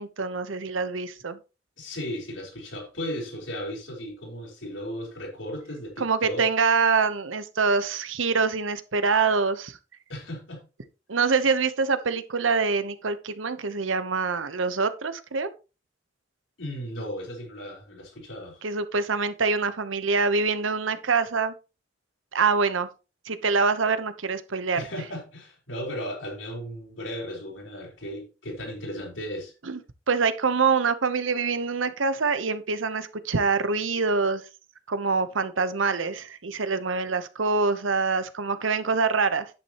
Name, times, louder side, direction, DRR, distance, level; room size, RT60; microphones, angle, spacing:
voice 1, 0.0-1.4 6.0-9.8 11.1-15.5 18.6-21.5 22.3-22.9 23.2-24.8 29.6-29.8 30.1-34.4 34.9-39.5, right 4 dB, 85° right, 0.9 m, -25 dB
voice 2, 1.8-6.5 10.1-10.6 16.6-18.6 24.7-29.5, equal, 75° left, 4.5 m, -35 dB
10.0 x 8.6 x 3.0 m
head